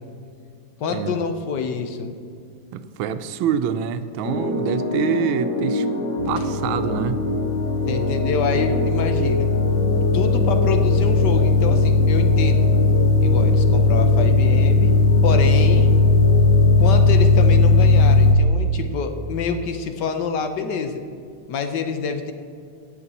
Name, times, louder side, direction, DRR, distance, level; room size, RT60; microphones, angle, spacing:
voice 1, 0.8-2.1 7.9-9.5 10.1-12.7 13.2-14.9 15.2-15.9 16.8-21.0 21.5-22.3, left 5 dB, 65° left, 7 dB, 1.3 m, -26 dB
voice 2, 2.7-5.9 6.3-7.2, right 8 dB, 90° right, 11 dB, 1.4 m, -25 dB
sound 1, 4.2-18.6, left 1 dB, 45° left, 1.2 m, -27 dB
sound 2, 6.2-18.4, left 3 dB, 85° left, 0.7 m, -17 dB
16.5 x 5.8 x 4.1 m, 2.4 s
omnidirectional pair, 2.2 m